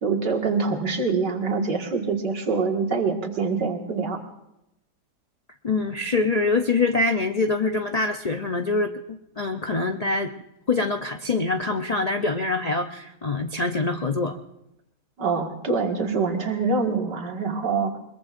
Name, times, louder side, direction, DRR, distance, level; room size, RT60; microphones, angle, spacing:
voice 1, 0.0-4.2 15.2-18.0, right 4 dB, 80° right, 2 dB, 2.5 m, -25 dB
voice 2, 5.6-10.3 10.7-14.4, left 3 dB, 85° left, 5 dB, 0.3 m, -24 dB
22.0 x 22.0 x 2.6 m, 0.87 s
omnidirectional pair, 1.8 m